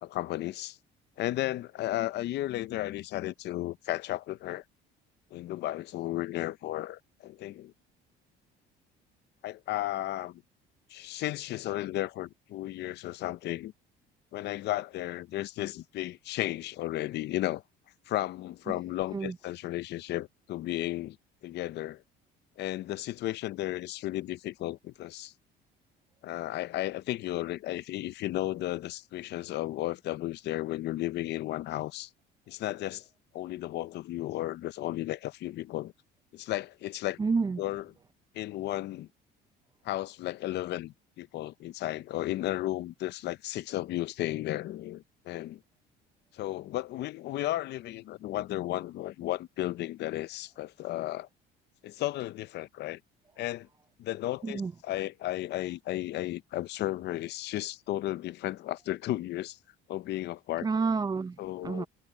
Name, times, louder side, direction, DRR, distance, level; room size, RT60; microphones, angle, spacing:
voice 1, 0.0-0.8 1.2-4.6 5.3-7.7 9.4-10.4 10.9-13.7 14.3-17.6 18.1-21.2 21.4-22.0 22.6-25.3 26.2-32.1 32.5-33.1 33.3-35.9 36.3-37.2 37.6-37.8 38.3-39.1 39.8-45.6 46.3-51.3 51.8-53.0 53.4-53.7 54.0-59.6 59.9-60.7 61.4-61.9, left 15 dB, 60° left, 0.6 m, -34 dB
voice 2, 37.2-37.6 54.4-54.7 60.6-61.9, right 4 dB, 20° right, 0.6 m, -30 dB
cardioid pair, 120°, 20 cm